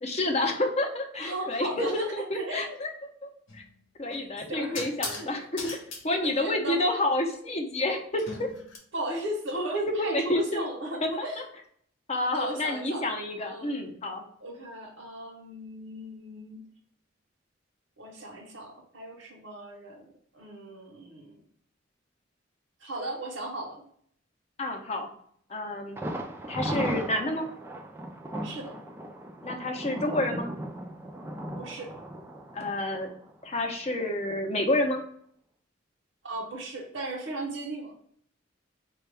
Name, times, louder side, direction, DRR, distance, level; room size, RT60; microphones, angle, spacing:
voice 1, 0.0-2.9 3.2-3.6 4.0-5.8 6.0-8.5 10.0-10.7 11.0-11.3 12.1-14.2 24.6-25.1 25.5-26.0 26.5-27.5 29.4-30.5 32.5-33.1 33.4-35.0, left 1 dB, 35° left, 3 dB, 0.6 m, -29 dB
voice 2, 1.2-2.8 4.0-5.3 6.2-6.8 8.9-11.4 12.3-13.1 13.4-13.9 14.4-16.6 18.0-20.1 20.3-21.4 22.8-23.8 28.4-28.7 31.6-31.9 36.2-37.9, right 1 dB, 75° right, -4 dB, 0.9 m, -36 dB
sound 1, 3.5-3.7 4.7-5.3 5.6-6.0 8.2-8.8, left 3 dB, 90° left, 1.0 m, -37 dB
Thunder, 26.0-33.7 34.0-34.1 34.5-34.6, right 1 dB, 10° right, 0.3 m, -37 dB
4.4 x 2.3 x 3.2 m, 0.63 s
head